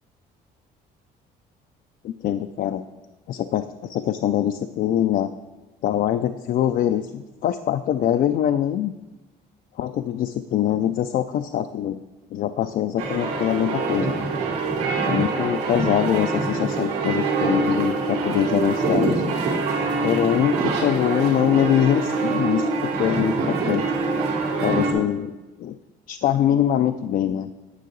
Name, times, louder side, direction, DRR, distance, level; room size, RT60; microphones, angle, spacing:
voice 1, 2.0-2.8 3.3-5.3 5.8-8.9 9.8-12.0 12.3-14.1 15.0-19.4 20.0-23.8 24.6-25.3 25.6-25.8 26.1-27.5, left 10 dB, 55° left, 9 dB, 0.4 m, -23 dB
sound 1, 13.0-24.9, right 3 dB, 90° right, 2.2 m, -24 dB
9.3 x 6.5 x 3.9 m, 1.1 s
cardioid pair, 110°, 17 cm